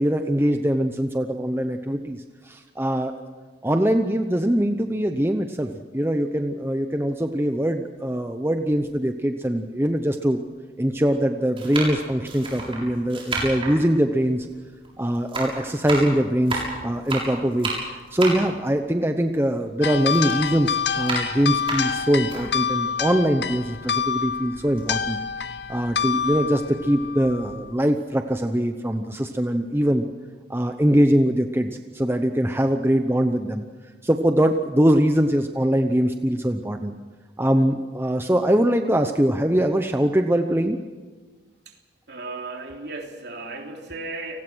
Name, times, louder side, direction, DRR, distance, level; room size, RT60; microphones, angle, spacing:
voice 1, 0.0-3.1 3.6-10.4 10.8-14.5 15.0-25.2 25.7-30.1 30.5-33.6 34.0-36.9 37.4-40.8, equal, 10° right, 6 dB, 0.8 m, -22 dB
sound 1, 8.7-8.8 9.7-9.8 10.8-11.0 11.5-14.9 15.1-19.7 20.1-22.4 22.9-23.0 23.3-24.3 24.6-24.8, right 3 dB, 30° right, 7.2 m, -31 dB
sound 2, 19.8-27.7, left 7 dB, 60° left, 0.8 m, -27 dB
voice 2, 42.1-44.4, right 3 dB, 60° right, 2 dB, 3.3 m, -35 dB
29.5 x 19.5 x 6.3 m, 1.4 s
head